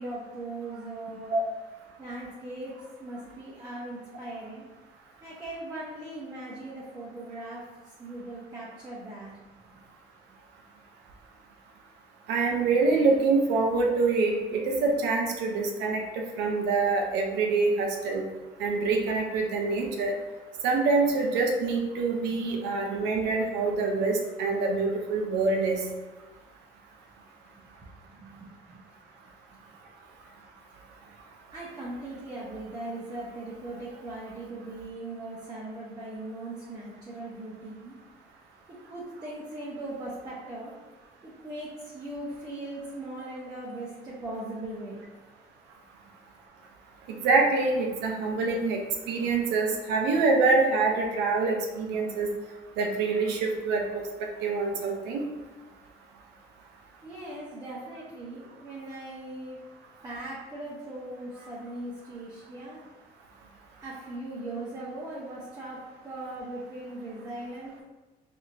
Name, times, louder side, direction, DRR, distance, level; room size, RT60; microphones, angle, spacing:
voice 1, 0.0-1.4 2.0-2.7 3.0-4.6 5.2-7.6 8.0-9.8 27.8-28.8 31.5-37.9 38.9-40.7 41.2-45.0 57.0-59.6 60.0-62.8 63.8-67.7, right 2 dB, 20° right, -7 dB, 0.8 m, -39 dB
voice 2, 12.3-18.2 18.6-20.1 20.6-25.8 47.1-48.8 49.1-52.3 52.8-53.8 54.4-55.3, right 3 dB, 85° right, 1 dB, 0.7 m, -25 dB
4.1 x 2.8 x 2.6 m, 1.2 s
cardioid pair, 110°, 17 cm